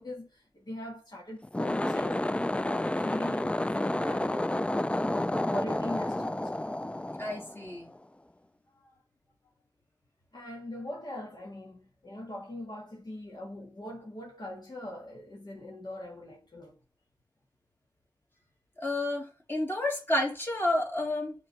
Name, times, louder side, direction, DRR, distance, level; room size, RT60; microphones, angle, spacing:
voice 1, 0.0-6.5 8.7-9.0 10.3-16.8, left 1 dB, 65° left, 1.8 m, -42 dB
sound 1, 1.4-8.0, left 1 dB, 15° left, 0.3 m, -30 dB
voice 2, 7.2-7.9 18.8-21.3, left 1 dB, 30° left, 2.8 m, -30 dB
6.5 x 4.0 x 4.3 m
wide cardioid pair, 60°, 8 cm